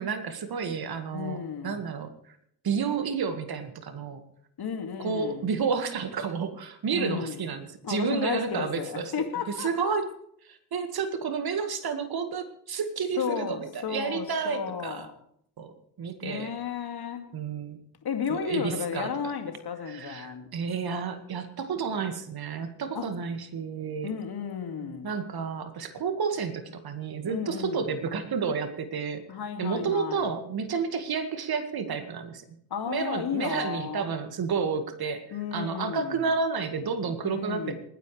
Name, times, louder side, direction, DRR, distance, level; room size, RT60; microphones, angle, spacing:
voice 1, 0.0-2.4 2.6-4.2 5.0-9.1 9.6-10.1 10.4-15.1 15.6-15.7 16.0-16.5 17.3-17.8 18.3-19.1 19.9-24.2 24.8-29.2 29.6-32.4 32.9-37.8, right 5 dB, 50° right, 8 dB, 2.0 m, -31 dB
voice 2, 1.1-1.8 4.6-5.5 6.9-7.4 7.8-10.0 13.2-15.1 16.2-17.3 18.0-20.5 22.9-23.1 24.0-25.1 27.2-27.9 29.3-30.3 32.7-34.1 35.3-36.2 37.2-37.8, left 7 dB, 50° left, 5 dB, 2.5 m, -33 dB
27.5 x 10.0 x 3.4 m, 0.71 s
hypercardioid pair, 45°, 48 cm